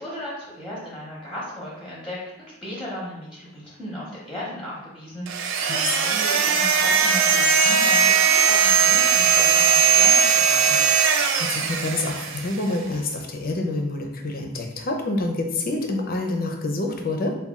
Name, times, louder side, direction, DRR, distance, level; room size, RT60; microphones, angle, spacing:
voice 1, 0.0-10.8, equal, ahead, -7 dB, 0.8 m, -35 dB
sound 1, 5.3-12.6, right 6 dB, 55° right, 0.3 m, -19 dB
voice 2, 11.2-17.4, left 2 dB, 40° left, 2 dB, 0.5 m, -27 dB
4.2 x 2.3 x 3.5 m, 0.90 s
head